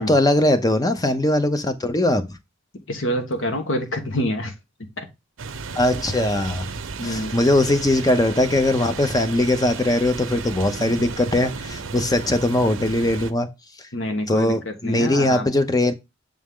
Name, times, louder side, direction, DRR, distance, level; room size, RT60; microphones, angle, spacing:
voice 1, 0.0-2.4 5.7-6.7 7.0-13.5 14.3-15.9, left 1 dB, 20° left, 0.7 m, -20 dB
voice 2, 2.9-4.5 5.0-5.1 7.0-7.3 13.9-14.6 14.8-15.5, left 1 dB, 75° left, 1.3 m, -26 dB
sound 1, 5.4-13.3, right 4 dB, 80° right, 0.6 m, -34 dB
7.3 x 3.6 x 3.6 m
head